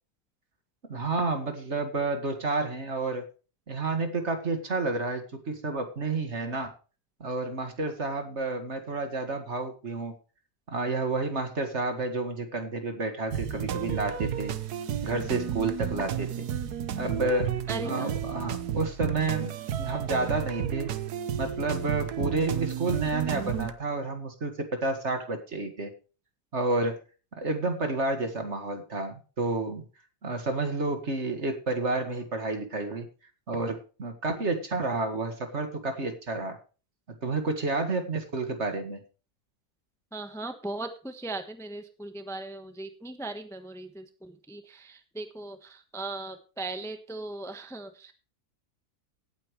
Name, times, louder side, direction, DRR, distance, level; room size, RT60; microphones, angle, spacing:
voice 1, 0.8-3.2 3.7-6.7 7.2-10.1 10.7-14.5 15.0-16.5 17.0-17.5 17.8-20.9 21.4-25.9 26.5-27.0 27.4-29.8 30.2-33.1 33.5-36.6 37.1-39.0, right 3 dB, 45° right, 6 dB, 2.2 m, -30 dB
sound 1, 13.3-23.7, right 9 dB, 90° right, 1.5 m, -32 dB
voice 2, 17.7-18.1 40.1-48.1, right 2 dB, ahead, 7 dB, 1.1 m, -38 dB
17.5 x 8.9 x 3.2 m, 0.35 s
omnidirectional pair, 1.6 m